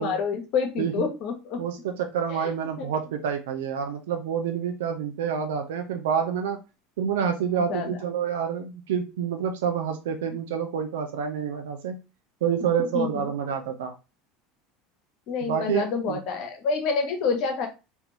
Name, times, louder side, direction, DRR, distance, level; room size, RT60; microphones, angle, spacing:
voice 1, 0.0-1.6 2.3-2.5 2.8-2.9 7.5-8.0 12.8-13.3 15.3-17.7, left 5 dB, 55° left, 4 dB, 1.1 m, -28 dB
voice 2, 1.6-6.6 7.0-12.0 12.4-13.9 15.5-16.2, right 7 dB, 70° right, 6 dB, 0.5 m, -28 dB
3.6 x 3.0 x 3.0 m, 0.28 s
figure-of-eight pair, 75°, 0 cm